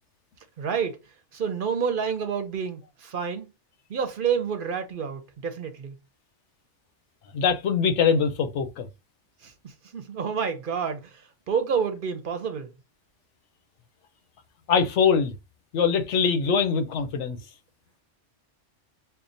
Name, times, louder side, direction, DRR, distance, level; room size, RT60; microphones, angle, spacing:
voice 1, 0.6-1.0 1.3-3.5 3.9-6.0 9.4-12.7, right 6 dB, 55° right, 0.7 m, -29 dB
voice 2, 7.3-8.9 14.7-15.3 15.7-17.4, left 6 dB, 85° left, 1.0 m, -23 dB
5.7 x 2.1 x 2.5 m
omnidirectional pair, 1.2 m